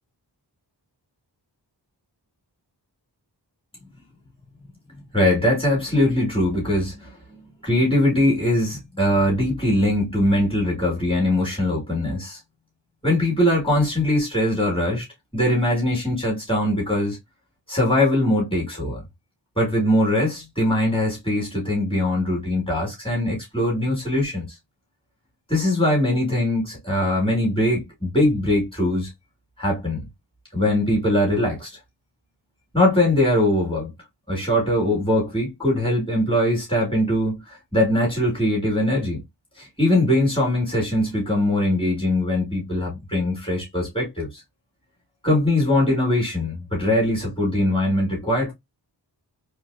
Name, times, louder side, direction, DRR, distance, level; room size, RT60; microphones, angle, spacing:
voice 1, 5.1-12.4 13.0-15.1 15.3-17.2 17.7-19.0 19.6-24.5 25.5-29.1 29.6-30.1 30.5-31.8 32.7-33.9 34.3-39.2 39.6-44.4 45.2-48.5, left 1 dB, 10° left, 2.3 m, -21 dB
3.9 x 3.2 x 2.7 m
wide cardioid pair, 90°, 43 cm